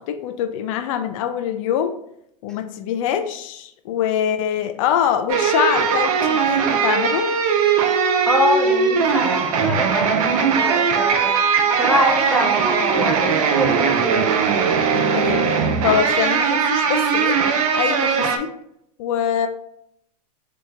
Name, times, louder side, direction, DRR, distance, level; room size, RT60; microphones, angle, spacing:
voice 1, 0.0-1.9 2.4-7.3 14.9-15.4 15.8-17.4 17.7-18.5 19.0-19.5, left 9 dB, 55° left, 8 dB, 0.4 m, -24 dB
sound 1, 5.3-18.4, right 6 dB, 60° right, 0.6 m, -19 dB
voice 2, 8.3-11.3 11.8-14.8, equal, 5° left, -1 dB, 0.7 m, -24 dB
3.9 x 2.3 x 3.1 m, 0.73 s
hypercardioid pair, 105°, 20 cm